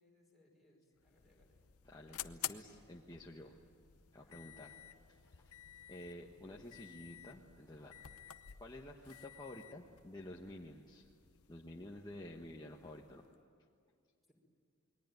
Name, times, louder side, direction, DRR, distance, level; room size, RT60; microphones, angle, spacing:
voice 1, 0.0-1.6 2.0-2.3 4.2-4.4 14.3-14.4, left 1 dB, ahead, -3 dB, 5.1 m, -70 dB
sound 1, 0.9-13.4, left 12 dB, 85° left, 0.8 m, -52 dB
voice 2, 1.8-3.6 4.1-4.7 5.1-5.6 5.9-8.3 8.6-11.1 11.5-13.2, left 1 dB, 20° left, -1 dB, 1.3 m, -51 dB
28.5 x 21.5 x 9.4 m, 2.2 s
head